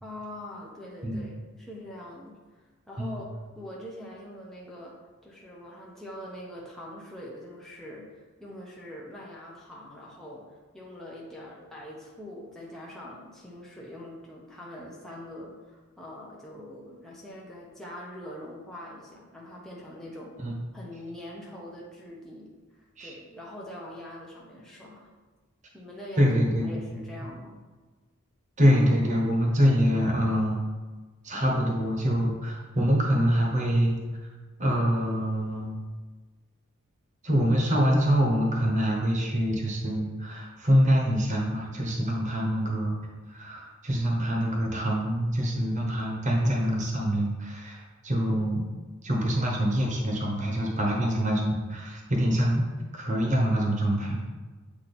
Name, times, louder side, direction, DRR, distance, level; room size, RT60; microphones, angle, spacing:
voice 1, 0.0-5.0 5.2-20.3 20.7-22.5 23.0-25.1 25.7-26.3 26.6-27.6, left 1 dB, ahead, -5 dB, 0.8 m, -43 dB
voice 2, 26.2-26.8 28.6-30.6 31.2-34.0 34.6-35.7 37.2-43.0 43.3-48.6 49.0-52.7 52.9-54.2, equal, 35° right, -1 dB, 1.1 m, -25 dB
8.2 x 2.9 x 4.2 m, 1.3 s
head